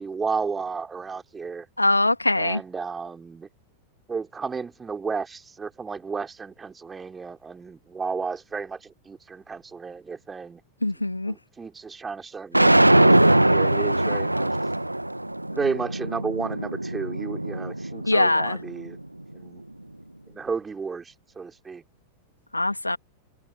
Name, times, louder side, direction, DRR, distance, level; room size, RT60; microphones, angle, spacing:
voice 1, 0.0-1.7 2.3-3.5 4.1-10.6 11.3-14.5 15.5-19.0 19.3-19.6 20.3-21.8, right 5 dB, 15° right, 4.0 m, -33 dB
voice 2, 1.8-2.6 10.8-11.3 18.1-18.6 22.5-23.0, left 2 dB, 85° left, 2.2 m, -22 dB
sound 1, 12.5-18.7, right 1 dB, 85° right, 1.8 m, -21 dB
figure-of-eight pair, 90°, 0 cm